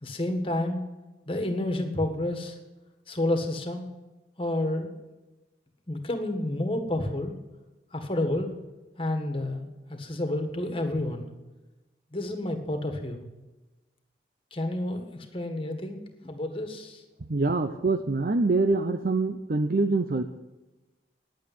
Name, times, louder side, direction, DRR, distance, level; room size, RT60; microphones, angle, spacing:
voice 1, 0.0-0.8 1.3-2.6 3.1-3.9 4.4-4.9 5.9-7.4 7.9-8.5 9.0-11.3 12.1-13.2 14.5-17.0, left 1 dB, 30° left, 6 dB, 1.7 m, -30 dB
voice 2, 17.3-20.2, right 3 dB, 55° right, 7 dB, 0.6 m, -25 dB
10.5 x 8.9 x 9.4 m, 1.1 s
head